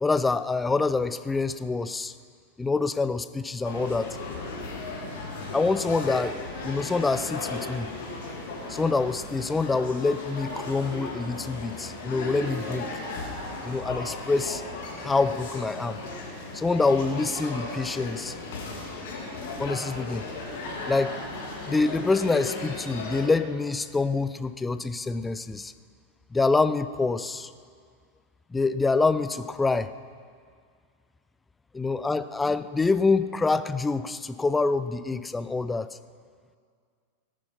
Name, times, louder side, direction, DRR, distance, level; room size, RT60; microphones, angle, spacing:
voice 1, 0.0-2.1 2.6-4.2 5.5-6.4 6.6-7.9 8.7-12.9 13.6-14.6 15.0-16.0 16.5-18.4 19.6-20.3 20.9-21.2 21.7-25.7 26.3-27.5 28.5-29.9 31.7-36.0, left 3 dB, 10° left, 13 dB, 0.5 m, -26 dB
sound 1, 3.6-23.3, left 3 dB, 50° left, 2.6 m, -36 dB
17.5 x 9.8 x 5.5 m, 2.1 s
figure-of-eight pair, 90°, 0 cm